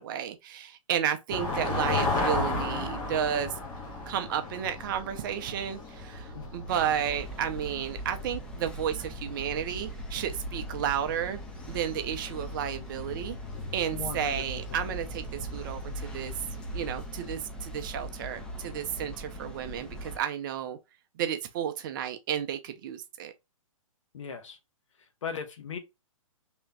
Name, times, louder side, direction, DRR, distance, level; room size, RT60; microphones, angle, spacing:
voice 1, 0.0-3.5 4.1-11.4 11.7-13.4 13.7-15.2 15.5-16.3 16.7-20.8 21.2-23.3, right 9 dB, 35° right, 0.6 m, -32 dB
sound 1, 1.3-17.3, left 2 dB, 25° left, 1.3 m, -36 dB
sound 2, 6.7-20.2, equal, 5° left, 0.5 m, -41 dB
voice 2, 13.9-14.4 14.7-14.8 24.1-24.6 25.2-25.8, left 6 dB, 60° left, 1.2 m, -37 dB
3.4 x 3.0 x 3.4 m
hypercardioid pair, 135°, 18 cm